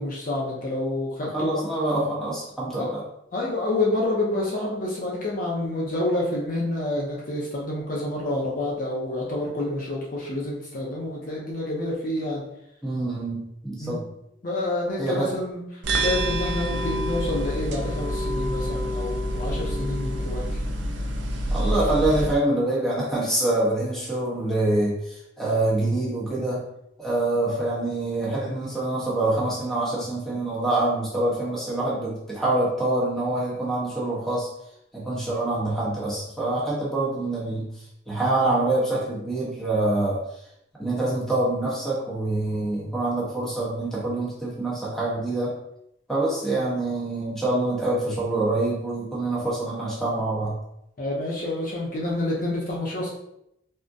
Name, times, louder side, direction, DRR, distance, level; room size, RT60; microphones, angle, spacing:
voice 1, 0.0-1.6 2.8-3.0 3.3-12.4 13.8-14.0 14.4-15.6 15.9-20.6 51.0-53.1, left 1 dB, 45° left, -4 dB, 0.6 m, -28 dB
voice 2, 1.3-3.0 12.8-14.1 15.0-15.3 21.5-26.6 27.0-34.5 34.9-37.7 38.1-40.2 40.8-45.5 46.1-50.6, right 2 dB, ahead, -7 dB, 0.9 m, -25 dB
sound 1, 15.8-22.3, equal, 65° right, 0.4 m, -27 dB
3.6 x 2.1 x 2.6 m, 0.79 s
head